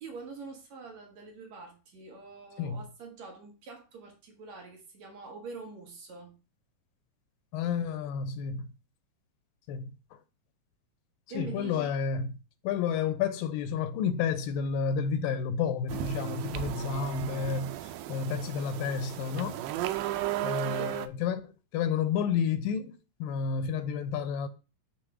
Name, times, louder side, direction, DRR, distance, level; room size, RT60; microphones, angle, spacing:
voice 1, 0.0-6.4 11.3-12.0 20.6-21.0, right 4 dB, 60° right, 2.4 m, -45 dB
voice 2, 7.5-8.7 9.7-10.2 11.3-12.3 12.6-19.6 20.4-24.5, left 6 dB, 85° left, 2.5 m, -31 dB
sound 1, 15.9-21.1, right 13 dB, 85° right, 2.3 m, -35 dB
6.6 x 3.8 x 5.9 m
omnidirectional pair, 4.1 m